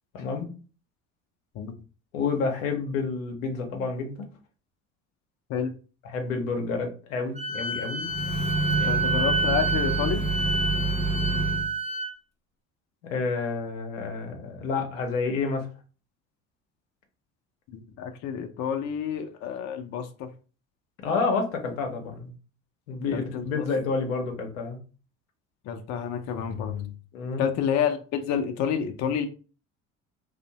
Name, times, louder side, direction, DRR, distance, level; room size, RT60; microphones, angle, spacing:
voice 1, 0.1-0.5 2.1-4.3 6.0-8.1 8.6-9.0 13.0-15.7 21.0-22.4 22.9-24.8 27.1-27.5, left 4 dB, 85° left, 3 dB, 0.6 m, -29 dB
Wind instrument woodwind instrument, 7.4-12.1, right 3 dB, 15° right, 0.5 m, -28 dB
sound 1, 8.0-11.7, right 2 dB, 75° right, 0.8 m, -28 dB
voice 2, 8.9-10.2 17.7-20.3 23.1-23.7 25.7-27.0 27.4-29.3, left 8 dB, 45° left, 6 dB, 0.5 m, -29 dB
2.5 x 2.1 x 2.8 m, 0.36 s
hypercardioid pair, 60°, 39 cm